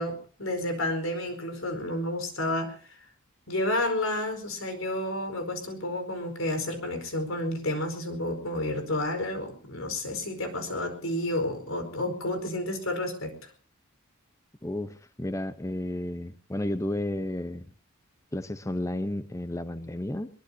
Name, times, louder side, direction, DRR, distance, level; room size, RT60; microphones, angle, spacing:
voice 1, 0.0-2.7 3.5-13.3, left 1 dB, 80° left, 7 dB, 4.7 m, -30 dB
voice 2, 14.6-17.6 18.3-20.3, left 1 dB, 15° left, 11 dB, 0.8 m, -32 dB
22.5 x 22.0 x 2.8 m, 0.40 s
head